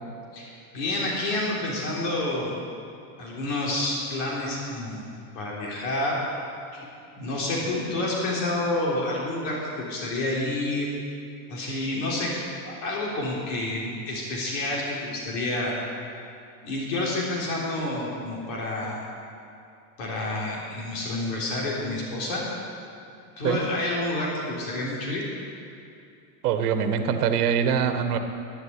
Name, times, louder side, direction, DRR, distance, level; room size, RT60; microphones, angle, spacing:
voice 1, 0.3-2.5 3.2-5.1 5.4-6.2 6.7-6.8 7.2-10.9 11.5-12.3 12.6-15.7 16.6-19.0 20.0-22.4 23.4-25.2, left 2 dB, 55° left, -4 dB, 3.8 m, -29 dB
voice 2, 26.4-28.2, right 7 dB, 75° right, 7 dB, 1.6 m, -23 dB
11.5 x 11.0 x 9.6 m, 2.6 s
supercardioid pair, 155°, 47 cm